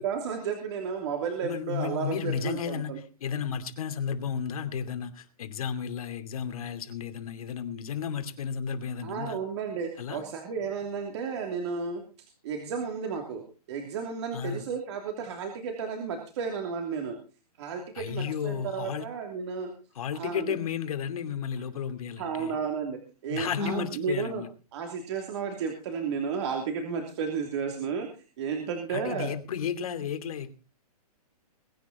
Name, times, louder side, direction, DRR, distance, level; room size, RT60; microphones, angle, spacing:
voice 1, 0.0-3.0 9.0-12.0 12.4-13.4 13.7-17.2 17.6-19.7 20.1-20.6 22.2-24.4 24.7-28.1 28.4-29.3, right 6 dB, 45° right, 3.0 m, -33 dB
voice 2, 1.4-9.4 10.0-10.2 14.3-14.7 17.9-19.0 19.9-22.5 23.3-24.5 28.9-30.5, left 7 dB, 60° left, 2.6 m, -33 dB
22.0 x 9.6 x 4.2 m
hypercardioid pair, 165°, 20 cm